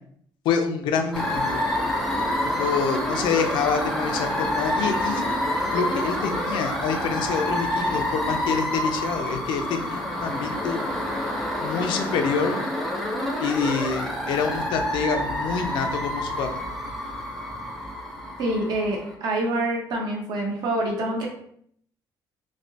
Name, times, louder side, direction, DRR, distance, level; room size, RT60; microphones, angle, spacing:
voice 1, 0.4-1.6 2.4-5.3 5.7-10.9 11.6-12.6 13.4-16.6, left 5 dB, 85° left, 5 dB, 0.5 m, -27 dB
sound 1, 1.1-19.1, left 1 dB, ahead, 0.5 m, -28 dB
voice 2, 18.4-21.3, right 1 dB, 60° right, 0 dB, 0.9 m, -26 dB
3.2 x 2.8 x 2.7 m, 0.66 s
cardioid pair, 160°, 8 cm